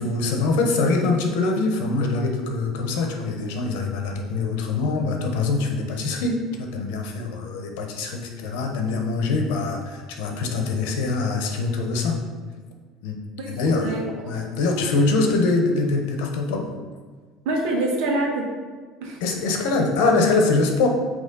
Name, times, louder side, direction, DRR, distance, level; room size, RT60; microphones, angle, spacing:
voice 1, 0.0-12.2 13.0-13.2 13.5-13.9 14.3-16.7 19.2-20.9, left 3 dB, 80° left, 2 dB, 0.9 m, -23 dB
voice 2, 13.4-14.3 17.4-18.5 19.0-19.2, right 2 dB, 70° right, 0 dB, 1.3 m, -26 dB
8.1 x 3.0 x 3.9 m, 1.5 s
cardioid pair, 165°, 0 cm